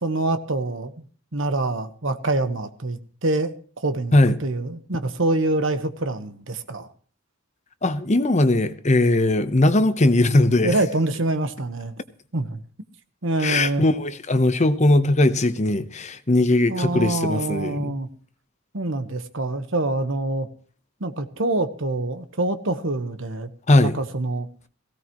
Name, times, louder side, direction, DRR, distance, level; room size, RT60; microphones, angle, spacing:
voice 1, 0.0-1.1 1.3-6.9 10.6-11.9 12.3-12.6 13.2-13.8 16.7-18.1 18.7-20.5 21.0-23.5 23.8-24.5, right 2 dB, 70° right, 1.3 m, -25 dB
voice 2, 7.8-10.8 13.4-17.9 23.7-24.0, left 2 dB, 35° left, 1.0 m, -19 dB
17.5 x 16.5 x 3.1 m
head